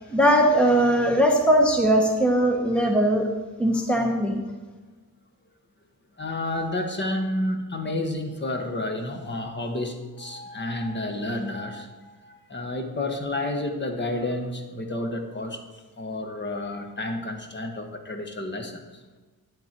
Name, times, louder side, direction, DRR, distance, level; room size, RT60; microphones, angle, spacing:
voice 1, 0.1-3.3 3.6-4.4, right 1 dB, 5° left, 2 dB, 0.9 m, -20 dB
voice 2, 6.2-15.6 16.0-18.8, left 1 dB, 30° left, 5 dB, 1.3 m, -30 dB
11.5 x 9.2 x 4.5 m, 1.3 s
wide cardioid pair, 170°, 38 cm